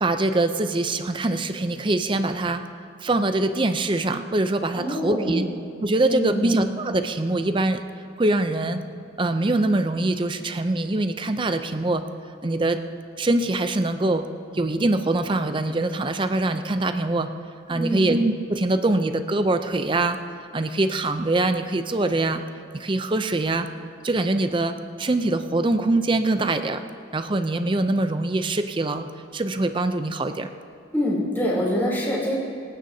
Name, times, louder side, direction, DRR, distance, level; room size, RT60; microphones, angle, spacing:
voice 1, 0.0-2.6 3.0-5.5 5.8-7.8 8.2-8.8 9.2-12.0 12.4-12.8 13.2-14.2 14.5-17.3 17.7-20.2 20.5-22.4 22.7-23.7 24.0-26.8 27.1-29.1 29.3-30.5, right 2 dB, 25° right, 8 dB, 0.5 m, -23 dB
voice 2, 4.7-5.4 6.0-6.5 17.7-18.1 30.9-32.4, equal, 10° left, -6 dB, 3.2 m, -25 dB
26.5 x 9.1 x 2.8 m, 2.4 s
head